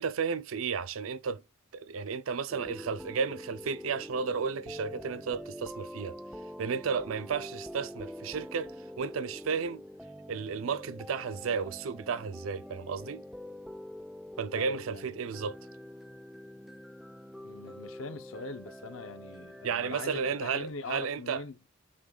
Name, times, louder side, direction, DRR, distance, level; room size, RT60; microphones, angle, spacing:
voice 1, 0.0-1.4 1.7-6.1 6.6-8.7 9.0-9.8 10.3-13.2 14.4-15.6 19.6-21.4, right 6 dB, 90° right, 0.5 m, -33 dB
sound 1, 2.5-20.7, equal, ahead, 0.5 m, -45 dB
voice 2, 14.5-15.2 17.4-21.6, left 3 dB, 75° left, 0.7 m, -42 dB
6.1 x 3.8 x 2.3 m
head